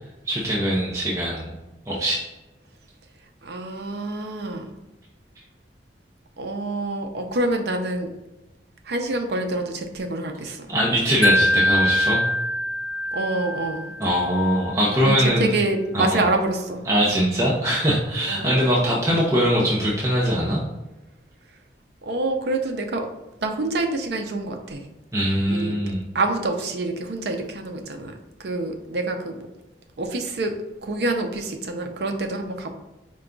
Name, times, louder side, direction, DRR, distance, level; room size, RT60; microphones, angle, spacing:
voice 1, 0.3-1.5 1.9-2.3 10.7-12.2 14.0-15.5 15.9-16.2 16.9-20.6 25.1-26.0, equal, 20° right, -5 dB, 0.6 m, -22 dB
voice 2, 3.4-4.7 6.4-8.1 8.8-10.7 13.1-13.9 15.0-16.9 18.3-18.6 22.0-23.1 23.4-24.8 25.5-25.8 26.1-28.1 28.4-29.5 30.0-30.5 30.8-32.7, right 2 dB, 65° right, 5 dB, 0.5 m, -26 dB
Wind chime, 11.2-14.3, left 1 dB, 25° left, 1.1 m, -23 dB
4.8 x 2.2 x 3.7 m, 1.0 s
head